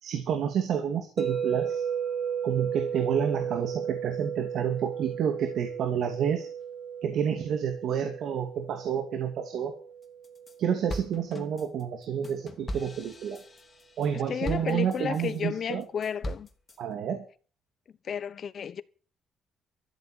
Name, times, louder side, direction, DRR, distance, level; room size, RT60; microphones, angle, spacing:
voice 1, 0.0-1.8 2.4-6.5 7.0-9.7 10.6-13.4 14.0-15.9 16.8-17.2, right 8 dB, 75° right, 2.6 m, -29 dB
sound 1, 1.2-11.3, right 7 dB, 20° right, 2.3 m, -35 dB
sound 2, 10.0-10.5 10.9-15.4 15.8-16.8, equal, 30° left, 3.1 m, -39 dB
voice 2, 14.1-16.5 18.0-18.8, left 7 dB, 55° left, 1.1 m, -32 dB
14.0 x 8.0 x 9.3 m
cardioid pair, 90°, 0 cm